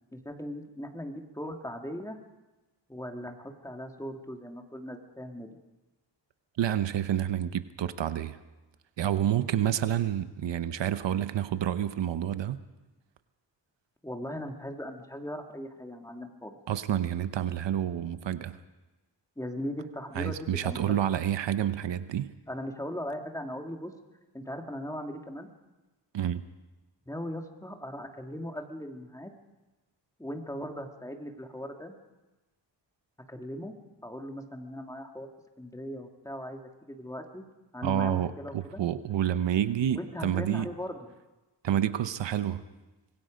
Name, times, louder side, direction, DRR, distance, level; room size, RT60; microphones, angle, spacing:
voice 1, 0.1-2.2 2.9-5.6 14.0-16.6 19.4-21.0 22.5-23.9 24.3-25.5 27.1-29.3 30.2-31.9 33.3-33.7 34.0-35.3 35.6-37.4 37.7-38.8 39.9-41.1, equal, 5° left, 3 dB, 2.0 m, -39 dB
voice 2, 6.6-8.4 9.0-12.6 16.7-18.6 20.1-22.3 26.1-26.5 37.8-40.7 41.6-42.6, right 10 dB, 80° right, 12 dB, 0.9 m, -29 dB
25.5 x 21.0 x 5.2 m, 1.1 s
wide cardioid pair, 110°, 43 cm